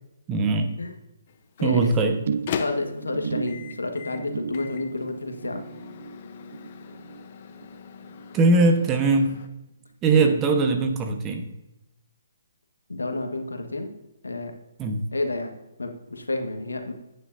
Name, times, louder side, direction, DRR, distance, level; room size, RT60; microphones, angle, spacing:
voice 1, 0.3-0.7 1.6-2.2 8.3-9.4 10.0-11.5 14.8-15.1, right 3 dB, 20° right, 5 dB, 1.1 m, -21 dB
Microwave oven, 1.3-9.5, left 7 dB, 45° left, 0.8 m, -39 dB
sound 1, 2.3-8.8 9.1-9.5 9.9-10.0, right 6 dB, 60° right, 0.5 m, -36 dB
voice 2, 2.6-5.6 10.2-10.3 12.9-13.9 14.2-14.5 15.1-16.9, left 2 dB, 90° left, 5 dB, 1.5 m, -30 dB
10.5 x 9.3 x 2.7 m, 0.96 s
figure-of-eight pair, 140°, 0 cm